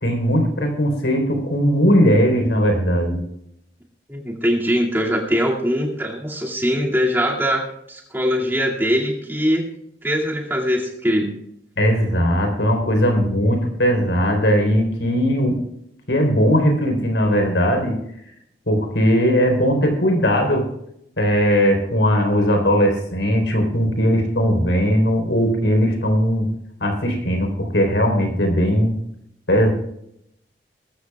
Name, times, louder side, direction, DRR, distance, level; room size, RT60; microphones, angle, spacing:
voice 1, 0.0-3.2 11.8-15.6 16.1-18.0 18.7-20.7 21.2-26.5 26.8-29.0 29.5-29.7, equal, 90° left, 3 dB, 4.0 m, -18 dB
voice 2, 4.1-9.6 10.0-11.3, equal, 10° right, -2 dB, 2.4 m, -22 dB
21.5 x 14.0 x 2.4 m, 0.76 s
head